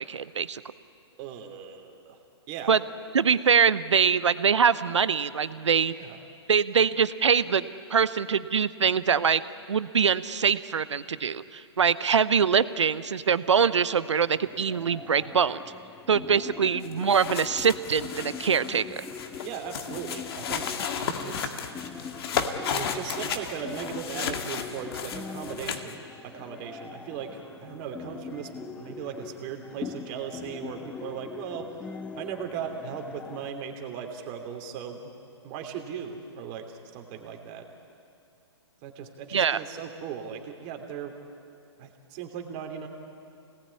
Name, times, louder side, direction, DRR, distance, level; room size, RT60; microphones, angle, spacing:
voice 1, 0.1-0.6 2.7-2.8 3.1-5.9 6.5-7.6 7.9-9.4 9.7-15.6 16.1-19.0 39.3-39.6, right 6 dB, 85° right, 15 dB, 0.9 m, -23 dB
voice 2, 1.2-2.2 2.5-2.7 5.9-6.2 19.4-21.5 22.7-31.7 32.2-35.0 35.4-37.6 38.8-41.1 41.8-42.9, right 7 dB, 35° right, 4 dB, 3.0 m, -38 dB
sound 1, 14.3-33.5, left 6 dB, 10° left, 0.5 m, -42 dB
sound 2, 16.8-25.9, left 6 dB, 60° left, 2.1 m, -34 dB
27.0 x 19.0 x 9.8 m, 2.6 s
hypercardioid pair, 140°, 15 cm